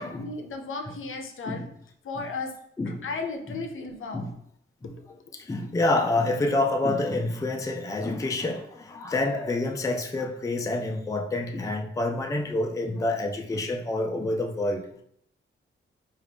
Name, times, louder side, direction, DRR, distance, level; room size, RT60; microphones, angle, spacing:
voice 1, 0.0-1.7 2.0-2.5 2.9-4.2 5.1-5.2, left 3 dB, 70° left, 3 dB, 0.6 m, -35 dB
voice 2, 5.3-15.0, left 2 dB, 15° left, 3 dB, 0.4 m, -28 dB
4.6 x 2.4 x 3.4 m, 0.69 s
wide cardioid pair, 110°, 21 cm